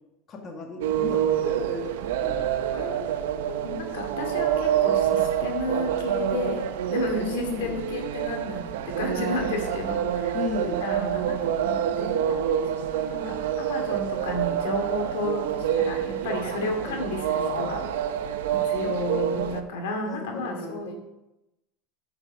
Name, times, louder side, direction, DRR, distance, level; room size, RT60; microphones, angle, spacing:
voice 1, 0.3-1.9 2.2-2.5 7.1-7.7 10.3-10.8 16.6-17.0 20.0-20.9, left 4 dB, 30° left, 2 dB, 1.4 m, -35 dB
sound 1, 0.8-19.6, right 9 dB, 85° right, 0.8 m, -27 dB
voice 2, 2.7-6.6 6.9-17.9 18.5-20.9, left 2 dB, 90° left, 3 dB, 2.3 m, -33 dB
8.9 x 6.0 x 5.9 m, 0.94 s
supercardioid pair, 155°, 0 cm